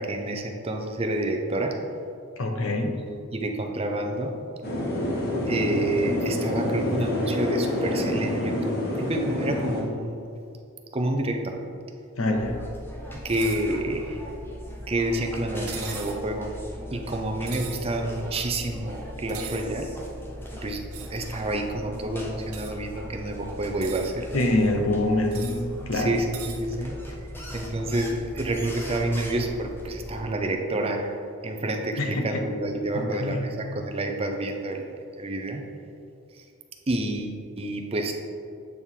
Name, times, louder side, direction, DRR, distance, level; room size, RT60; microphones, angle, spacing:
voice 1, 0.0-1.8 2.9-4.3 5.5-10.3 10.9-11.6 13.2-14.2 14.9-16.5 16.9-19.9 20.6-20.8 21.1-24.3 25.8-26.9 27.5-31.1 31.4-35.7 36.3-36.4 36.9-38.1, right 1 dB, 25° right, 3 dB, 0.5 m, -29 dB
voice 2, 2.4-3.0 12.2-12.6 24.3-26.1 32.0-32.4 32.9-33.5, left 1 dB, 65° left, 3 dB, 0.8 m, -25 dB
sound 1, 4.6-9.8, left 1 dB, 45° left, 1.0 m, -27 dB
sound 2, 12.3-30.2, equal, 10° left, 0.8 m, -39 dB
sound 3, 13.2-13.6 15.7-16.2 17.5-17.8 19.3-19.6 20.9-21.2 22.5-22.7 23.6-24.1 25.3-25.6 26.3-26.6, right 8 dB, 80° right, 0.9 m, -39 dB
8.3 x 4.5 x 3.6 m, 2.5 s
head